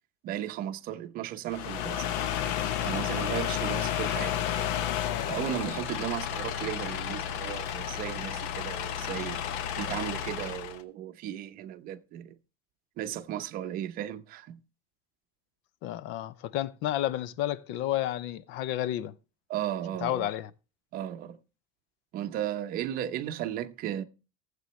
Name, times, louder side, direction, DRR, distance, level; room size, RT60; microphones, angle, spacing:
voice 1, 0.2-2.1 2.8-4.5 5.3-9.4 9.8-12.4 13.0-14.6 19.5-20.3 20.9-21.4 22.1-24.0, right 11 dB, 45° right, 0.8 m, -35 dB
sound 1, 1.5-10.8, left 10 dB, 85° left, 1.0 m, -32 dB
voice 2, 15.8-19.2 20.0-20.5, left 13 dB, 60° left, 0.6 m, -31 dB
15.5 x 7.8 x 3.1 m
cardioid pair, 170°, 20 cm